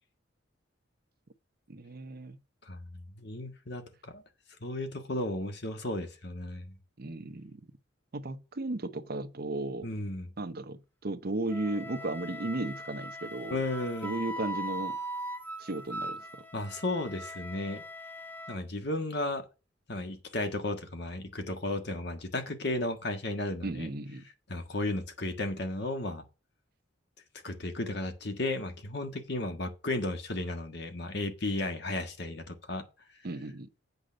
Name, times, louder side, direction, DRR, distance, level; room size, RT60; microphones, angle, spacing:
voice 1, 1.7-2.4 7.0-7.6 8.1-9.9 10.4-13.6 14.0-15.0 15.6-16.2 23.6-24.2 33.2-33.7, right 2 dB, 50° right, 0.7 m, -35 dB
voice 2, 2.7-4.2 4.6-6.7 9.8-10.3 13.5-14.2 16.5-17.8 18.5-19.4 19.9-23.9 24.5-26.2 27.4-32.8, left 2 dB, 60° left, 1.5 m, -34 dB
Wind instrument woodwind instrument, 11.5-18.6, equal, 10° left, 0.9 m, -40 dB
8.2 x 5.2 x 6.3 m
head